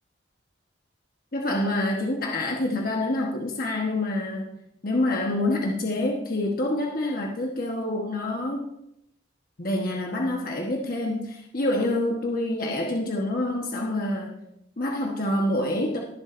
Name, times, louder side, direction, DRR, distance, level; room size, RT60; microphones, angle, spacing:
voice 1, 1.3-4.6 4.8-8.6 9.6-14.4 14.8-16.0, left 1 dB, 50° left, -1 dB, 1.2 m, -27 dB
20.0 x 7.3 x 2.6 m, 0.80 s
head